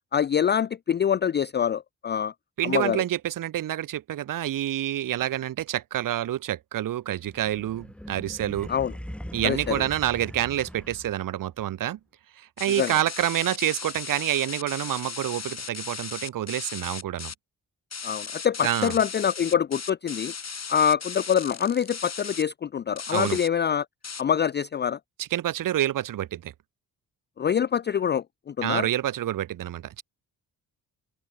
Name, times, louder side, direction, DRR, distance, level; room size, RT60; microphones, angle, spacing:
voice 1, 0.1-2.3 2.6-3.0 8.7-8.9 9.4-9.8 12.8-12.9 18.0-20.3 20.7-23.9 24.2-25.0 27.4-28.9, left 8 dB, 30° left, 0.4 m, -25 dB
voice 2, 2.6-8.7 9.3-12.0 12.4-17.3 18.6-18.9 23.1-23.4 25.2-26.5 28.6-30.0, right 12 dB, 65° right, 0.7 m, -28 dB
sound 1, 7.2-11.4, equal, 5° left, 3.0 m, -40 dB
sound 2, 12.6-17.3 17.9-22.4 23.0-23.5 24.0-24.2, left 5 dB, 45° left, 4.5 m, -37 dB
open air
cardioid pair, 75°, 36 cm